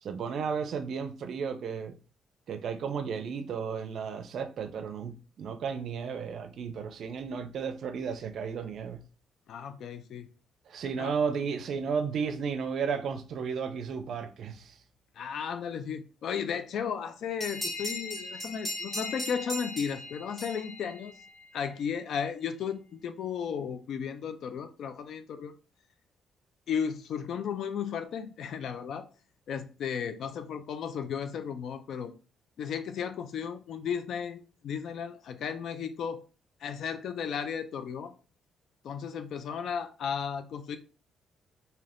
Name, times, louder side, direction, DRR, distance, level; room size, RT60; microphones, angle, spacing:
voice 1, 0.0-1.9 2.5-9.0 10.7-14.8, right 6 dB, 65° right, 0.4 m, -33 dB
voice 2, 9.5-10.3 11.0-11.1 15.2-21.2 21.5-25.5 26.7-29.1 29.5-32.1 32.6-36.2 36.6-38.1 38.8-40.8, left 7 dB, 70° left, 0.3 m, -34 dB
sound 1, 17.4-21.6, left 1 dB, 25° left, 1.6 m, -38 dB
3.2 x 2.8 x 2.5 m
cardioid pair, 90°, 0 cm